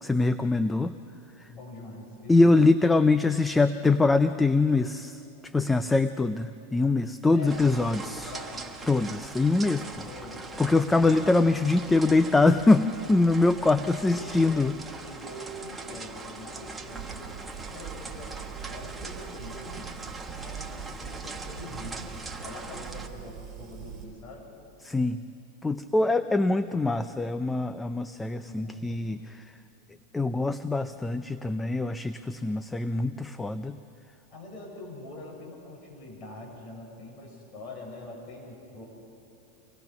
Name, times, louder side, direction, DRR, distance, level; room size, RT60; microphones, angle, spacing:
voice 1, 0.0-0.9 2.3-5.2 5.5-8.3 8.9-9.9 10.6-14.8 24.8-25.2 25.6-29.2 30.1-33.8, left 3 dB, 10° left, 11 dB, 0.5 m, -23 dB
voice 2, 1.5-2.5 7.3-8.7 10.0-11.4 13.7-19.9 20.3-22.0 22.4-24.5 28.4-29.3 34.3-38.8, left 1 dB, 40° left, -1 dB, 6.9 m, -44 dB
sound 1, 7.5-23.1, right 3 dB, 10° right, 1.4 m, -41 dB
Fire, 16.9-24.0, right 8 dB, 30° right, 6.5 m, -42 dB
25.0 x 19.5 x 6.1 m, 2.8 s
supercardioid pair, 135°, 0 cm